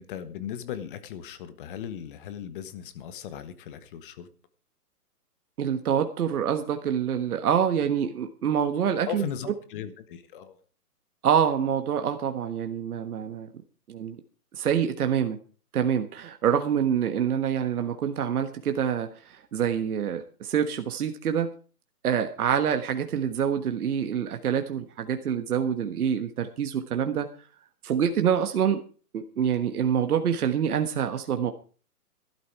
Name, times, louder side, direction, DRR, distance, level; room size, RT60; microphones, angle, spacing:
voice 1, 0.0-4.3 9.1-10.6, left 9 dB, 35° left, 12 dB, 1.4 m, -38 dB
voice 2, 5.6-9.3 11.2-13.5 13.9-14.2 14.5-15.4 15.7-21.5 22.0-27.3 27.8-28.8 29.1-31.5, right 8 dB, 65° right, 7 dB, 1.5 m, -26 dB
12.5 x 12.5 x 4.7 m, 0.39 s
hypercardioid pair, 155°, 47 cm